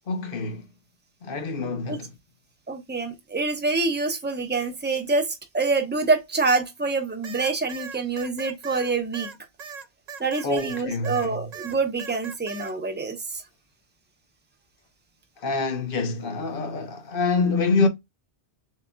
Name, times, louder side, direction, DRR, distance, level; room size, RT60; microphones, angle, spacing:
voice 1, 0.1-0.6 1.2-2.1 10.4-11.4 15.4-17.9, left 3 dB, 55° left, 0.9 m, -26 dB
voice 2, 2.7-9.3 10.2-13.4, right 3 dB, 10° right, 0.8 m, -26 dB
sound 1, 7.2-11.3 11.5-12.7, right 6 dB, 50° right, 0.5 m, -39 dB
7.2 x 2.8 x 2.3 m
omnidirectional pair, 1.2 m